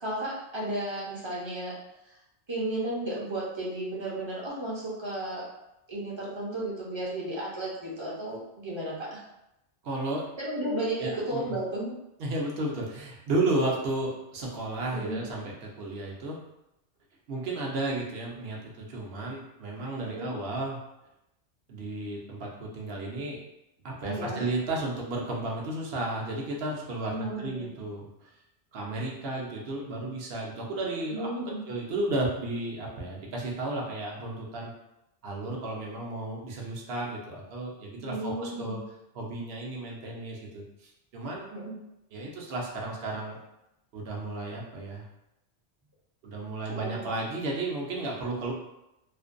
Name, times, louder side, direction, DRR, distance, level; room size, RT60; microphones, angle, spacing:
voice 1, 0.0-1.7 2.5-5.4 5.9-9.2 10.4-11.9 14.9-15.2 20.0-20.3 24.1-24.4 27.1-27.7 31.1-31.6 38.0-38.8 41.5-41.8 46.7-46.9, right 1 dB, 35° right, -6 dB, 0.5 m, -33 dB
voice 2, 9.8-10.3 11.0-11.6 12.2-16.4 17.3-20.8 21.7-23.4 23.8-28.3 28.7-31.3 31.7-34.7 35.2-38.8 39.1-41.5 42.1-43.4 43.9-45.1 46.2-48.5, right 2 dB, 65° right, -2 dB, 0.8 m, -33 dB
2.5 x 2.1 x 2.5 m, 0.87 s
omnidirectional pair, 1.2 m